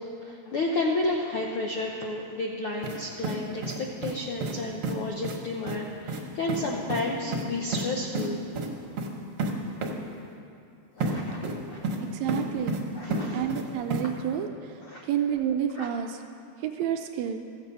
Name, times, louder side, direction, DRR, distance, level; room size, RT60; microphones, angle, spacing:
voice 1, 0.0-8.4 11.0-12.1 12.9-13.5 14.8-15.1 15.7-15.9, left 2 dB, 80° left, 0 dB, 1.2 m, -32 dB
sound 1, 2.8-3.0 3.2-4.2 4.4-4.6 4.8-4.9 5.2-5.4 5.7-5.8 6.1-6.2 6.5-6.6 6.9-7.0 7.3-7.8 8.1-8.3 8.5-8.7 9.0-9.1 9.4-9.5 9.8-9.9 11.0-11.1 11.4-12.0 12.3-12.8 13.1-13.6 13.9-14.0, right 3 dB, 60° right, 1.7 m, -30 dB
voice 2, 12.1-12.8 13.3-16.2 16.6-17.4, right 9 dB, 80° right, 4 dB, 1.8 m, -29 dB
15.0 x 7.4 x 5.5 m, 2.4 s
omnidirectional pair, 3.5 m